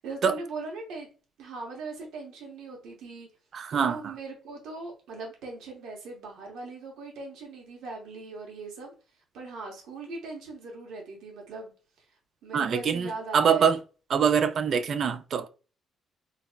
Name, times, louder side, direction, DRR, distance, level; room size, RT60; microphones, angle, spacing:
voice 1, 0.0-1.1 1.4-3.3 3.7-8.9 9.3-11.7 12.4-13.7, right 3 dB, 85° right, 0.8 m, -39 dB
voice 2, 3.5-4.1 12.5-13.8 14.1-15.5, right 7 dB, 60° right, 0.3 m, -24 dB
3.9 x 2.0 x 2.2 m
cardioid pair, 90°, 0 cm